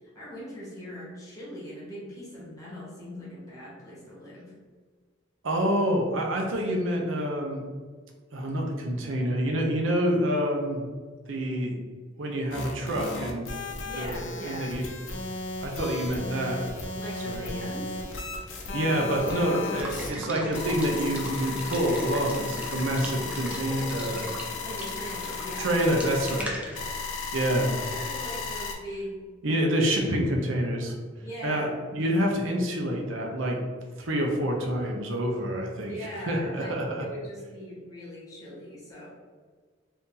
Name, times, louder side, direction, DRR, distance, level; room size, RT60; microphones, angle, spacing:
voice 1, 0.1-4.5 13.8-14.7 16.9-17.9 24.6-25.8 27.3-29.1 29.4-29.7 30.0-30.2 31.2-31.7 35.9-39.1, equal, 20° left, -7 dB, 1.2 m, -40 dB
voice 2, 5.4-7.6 8.3-10.9 11.3-11.8 12.2-13.5 14.0-14.8 15.6-16.6 17.3-17.5 18.7-24.3 25.6-26.5 26.8-26.9 27.3-27.7 29.4-30.9 31.4-33.6 34.0-35.9 36.3-37.1, equal, 85° right, 0 dB, 0.6 m, -27 dB
sound 1, 12.5-28.7, left 4 dB, 85° left, 0.6 m, -35 dB
Water / Water tap faucet / Liquid, 18.8-28.4, equal, 5° right, 0.4 m, -39 dB
2.8 x 2.7 x 3.7 m, 1.5 s
head